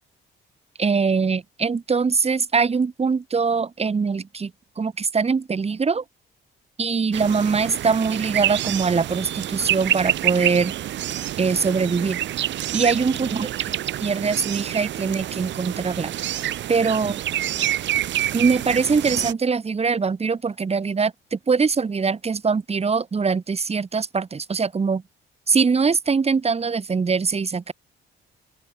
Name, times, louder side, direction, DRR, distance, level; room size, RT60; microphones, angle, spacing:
voice 1, 0.8-4.5 4.8-6.0 6.8-10.7 11.4-12.2 12.7-16.1 16.7-17.2 18.3-25.0 25.5-27.7, right 5 dB, 30° right, 1.7 m, -22 dB
sound 1, 7.1-19.3, right 12 dB, 70° right, 0.8 m, -27 dB
open air
cardioid pair, 90°, 20 cm